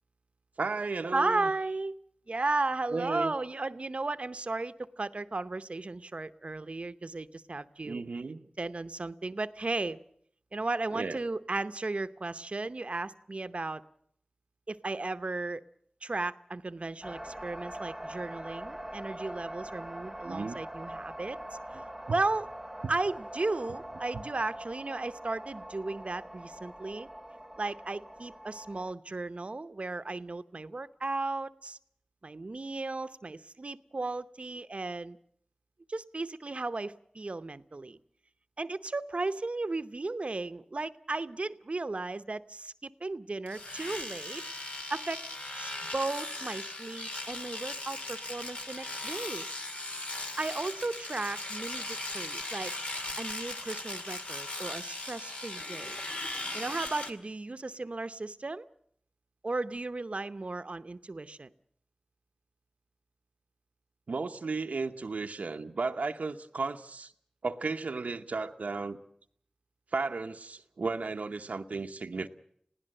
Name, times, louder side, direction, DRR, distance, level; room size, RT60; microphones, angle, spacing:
voice 1, 0.6-1.5 2.9-3.3 7.8-8.5 10.9-11.2 20.2-20.6 22.1-22.2 64.1-67.1 67.4-69.0 69.9-72.3, right 4 dB, 90° right, 6 dB, 0.8 m, -34 dB
voice 2, 1.1-2.0 2.3-8.0 8.6-10.0 10.5-13.8 14.7-15.6 16.0-21.4 21.7-21.8 22.1-22.5 22.9-27.1 27.6-31.8 32.2-35.2 35.9-38.0 38.6-44.4 44.9-45.2 45.6-49.5 50.4-52.7 53.2-56.0 56.5-58.6 59.4-61.5, right 3 dB, 55° right, 12 dB, 0.8 m, -35 dB
sound 1, 17.0-28.9, right 1 dB, 10° right, 1.1 m, -43 dB
Domestic sounds home sounds, 43.5-57.1, left 2 dB, 65° left, 2.0 m, -38 dB
21.0 x 16.5 x 7.7 m, 0.67 s
cardioid pair, 40°, 2 cm